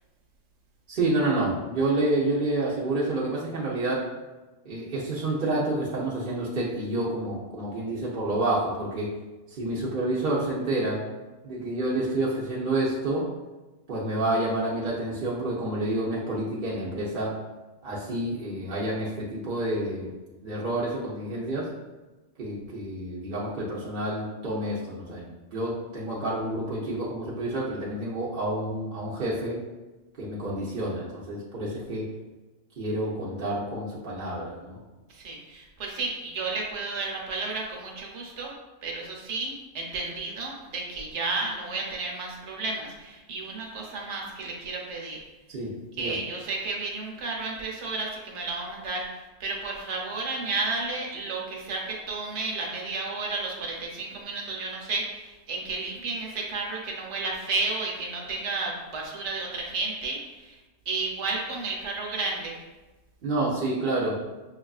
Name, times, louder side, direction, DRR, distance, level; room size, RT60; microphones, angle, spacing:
voice 1, 0.9-4.1 4.6-9.1 9.5-11.0 11.4-13.3 13.9-17.4 17.8-20.1 20.4-21.7 22.4-29.6 30.2-32.1 32.8-34.8 45.5-46.2 63.2-64.2, right 1 dB, 55° right, -6 dB, 0.8 m, -29 dB
voice 2, 35.1-38.5 38.8-45.2 46.0-60.6 60.9-62.7, right 3 dB, 75° right, -1 dB, 1.1 m, -32 dB
5.8 x 2.4 x 2.3 m, 1.1 s
omnidirectional pair, 1.2 m